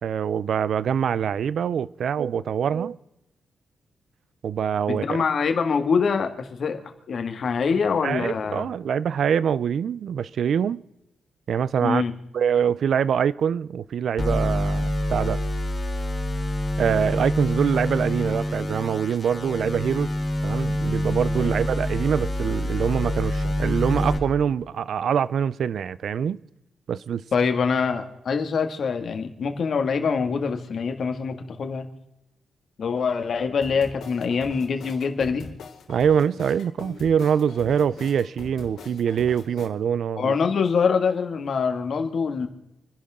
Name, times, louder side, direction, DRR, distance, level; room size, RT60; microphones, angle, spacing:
voice 1, 0.0-3.0 4.4-5.2 8.0-10.8 11.5-12.0 12.3-15.4 16.8-20.1 20.4-26.4 26.9-27.2 35.9-40.3, right 8 dB, 65° right, 0.5 m, -24 dB
voice 2, 4.9-6.8 7.1-8.7 11.8-12.1 27.3-31.9 32.8-35.5 40.2-42.5, left 5 dB, 55° left, 2.1 m, -24 dB
sound 1, 14.2-24.2, left 1 dB, 20° left, 3.7 m, -26 dB
sound 2, 33.6-39.7, left 4 dB, 75° left, 3.0 m, -42 dB
28.5 x 11.5 x 3.7 m
cardioid pair, 130°, 0 cm